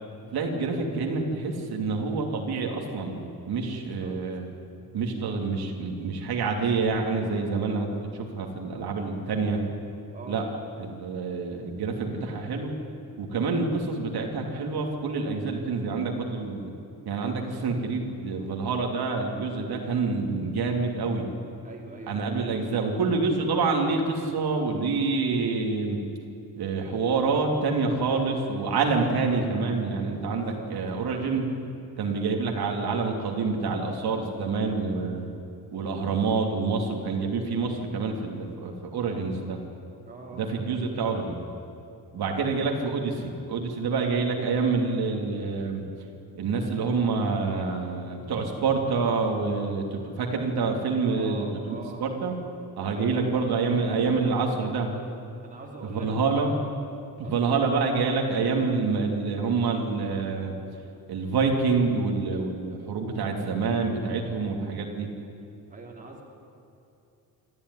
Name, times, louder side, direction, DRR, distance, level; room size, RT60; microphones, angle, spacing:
voice 1, 0.3-4.4 4.9-7.9 8.1-9.6 10.3-10.4 10.8-12.7 13.2-16.7 17.0-21.3 22.1-26.0 26.6-31.5 32.0-35.3 35.7-39.6 40.3-41.4 42.1-45.8 46.3-52.4 52.8-54.9 55.8-56.5 57.2-60.5 61.1-65.1, right 4 dB, 85° right, 1 dB, 3.0 m, -27 dB
voice 2, 3.7-4.1 10.1-10.5 21.6-22.7 30.2-30.7 40.1-41.1 51.0-52.0 53.0-53.8 55.4-56.1 57.2-57.7 65.7-66.2, right 3 dB, 20° right, -1 dB, 3.4 m, -43 dB
25.5 x 14.5 x 9.9 m, 2.8 s
wide cardioid pair, 170°, 37 cm